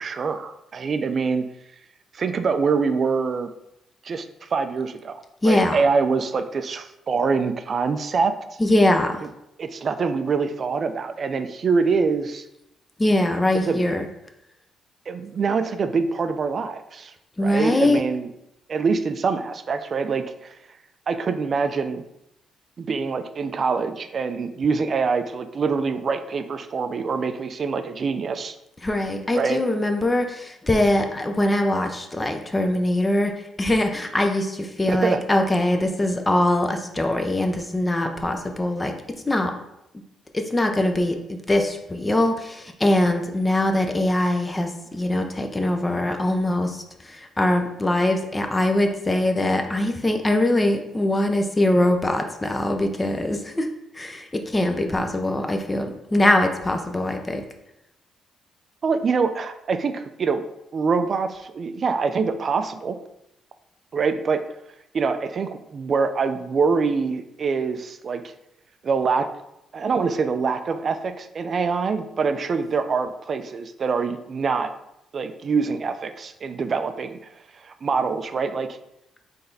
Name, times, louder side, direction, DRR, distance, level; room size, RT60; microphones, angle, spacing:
voice 1, 0.0-1.4 2.1-3.5 4.0-5.1 5.4-8.3 9.6-12.5 13.7-13.8 15.1-17.1 17.4-18.3 18.7-20.5 21.1-22.0 22.8-28.6 29.3-29.6 34.9-35.2 58.8-60.5 60.7-63.0 63.9-64.4 64.9-68.2 68.8-69.3 69.7-74.7 75.1-77.2 77.6-78.7, right 5 dB, 45° right, 9 dB, 0.4 m, -24 dB
voice 2, 5.4-5.8 8.6-9.2 13.0-14.1 17.4-18.0 28.8-38.9 39.3-39.5 40.3-53.7 53.9-57.4, left 1 dB, 20° left, 5 dB, 0.6 m, -22 dB
4.0 x 3.3 x 4.0 m, 0.83 s
cardioid pair, 90°, 0 cm